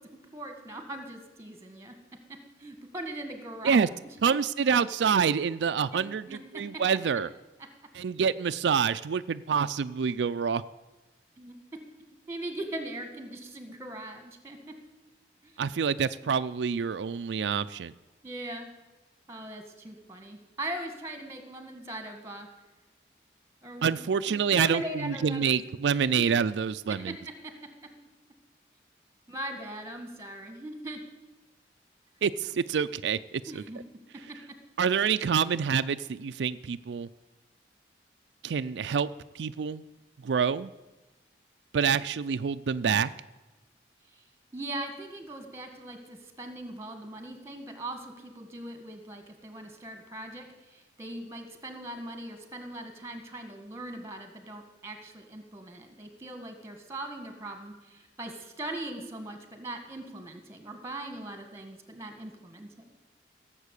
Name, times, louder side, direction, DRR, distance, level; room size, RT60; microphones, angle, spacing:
voice 1, 0.3-2.0 2.3-3.7 5.9-6.0 6.3-6.8 11.4-11.5 12.3-14.8 15.4-15.6 16.2-16.3 18.2-18.7 19.3-22.5 23.6-25.6 26.2-26.3 26.9-27.5 29.3-31.0 33.5-33.8 34.3-34.4 44.1-44.2 44.5-62.7, right 1 dB, 15° right, 6 dB, 1.8 m, -40 dB
voice 2, 4.2-7.3 7.9-10.6 15.6-17.9 23.8-27.2 32.2-33.6 34.8-37.1 38.4-39.1 39.3-39.8 40.2-40.7 41.7-43.1, right 6 dB, 85° right, 12 dB, 0.4 m, -27 dB
16.5 x 7.4 x 8.3 m, 1.1 s
head